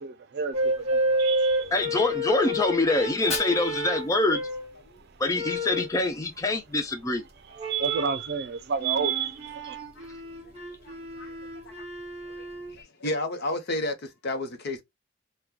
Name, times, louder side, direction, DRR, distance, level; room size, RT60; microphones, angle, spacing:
voice 1, 0.3-1.7 7.5-9.8, right 6 dB, 55° right, 0.5 m, -30 dB
sound 1, 0.5-4.7 5.3-6.0 7.6-8.2 8.8-12.8, equal, 35° right, 1.0 m, -30 dB
voice 2, 1.7-4.4 5.2-7.2, left 2 dB, 15° left, 0.4 m, -25 dB
Fire, 3.0-5.0, left 3 dB, 35° left, 1.2 m, -38 dB
voice 3, 10.8-11.3 12.8-13.9 14.2-14.8, left 2 dB, 55° left, 0.8 m, -31 dB
2.9 x 2.2 x 3.6 m
head